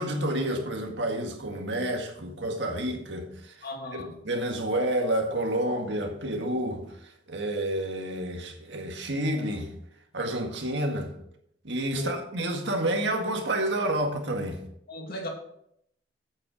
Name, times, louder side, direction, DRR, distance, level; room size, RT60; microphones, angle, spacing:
voice 1, 0.0-3.5 4.2-9.7 10.1-11.1 11.6-14.6, right 1 dB, 70° right, 1.8 m, -29 dB
voice 2, 3.6-4.1 12.0-12.1 14.9-15.3, left 2 dB, 55° left, 2.3 m, -36 dB
8.6 x 7.9 x 4.8 m
head